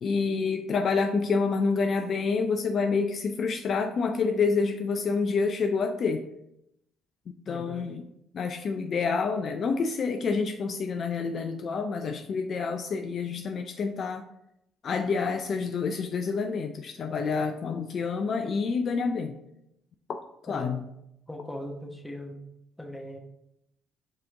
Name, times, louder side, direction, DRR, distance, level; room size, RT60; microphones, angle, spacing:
voice 1, 0.0-6.2 7.3-8.1 8.3-14.3 14.8-19.4 20.1-20.2 20.4-20.8, left 4 dB, 50° left, 6 dB, 0.3 m, -28 dB
voice 2, 7.5-7.9 20.5-20.7 21.3-22.4 22.8-23.2, left 1 dB, 5° left, 1 dB, 1.1 m, -39 dB
4.7 x 2.9 x 3.6 m, 0.81 s
hypercardioid pair, 55°, 0 cm